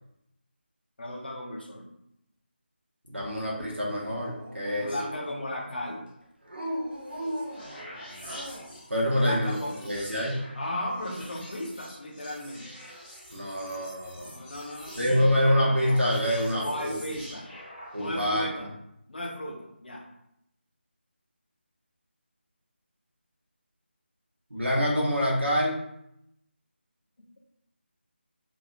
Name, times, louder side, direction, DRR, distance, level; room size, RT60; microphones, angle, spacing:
voice 1, 1.0-1.9 4.8-6.0 9.1-9.7 10.5-12.8 14.2-15.4 16.5-17.5 18.0-18.7 19.1-20.0, left 1 dB, 55° left, -1 dB, 0.8 m, -35 dB
voice 2, 3.1-4.9 8.9-10.4 13.3-14.3 14.9-17.2 17.9-18.7 24.5-25.8, equal, 85° right, -4 dB, 1.0 m, -26 dB
Dog, 4.1-5.6 6.4-8.8, equal, 60° right, 0.7 m, -38 dB
sound 1, 6.9-18.3, equal, 10° left, 1.3 m, -46 dB
3.1 x 2.7 x 2.7 m, 0.78 s
figure-of-eight pair, 160°, 6 cm